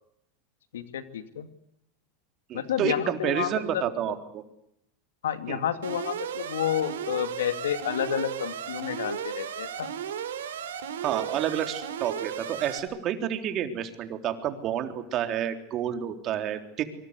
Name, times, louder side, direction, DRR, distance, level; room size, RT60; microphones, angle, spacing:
voice 1, 0.7-1.5 2.5-3.8 5.2-9.9, left 10 dB, 85° left, 10 dB, 2.3 m, -30 dB
voice 2, 2.5-4.4 5.5-5.6 11.0-16.8, right 9 dB, 45° right, 6 dB, 3.8 m, -29 dB
Alarm, 5.8-12.8, right 8 dB, 85° right, 4.0 m, -35 dB
25.0 x 25.0 x 8.3 m, 0.77 s
hypercardioid pair, 105°, 0 cm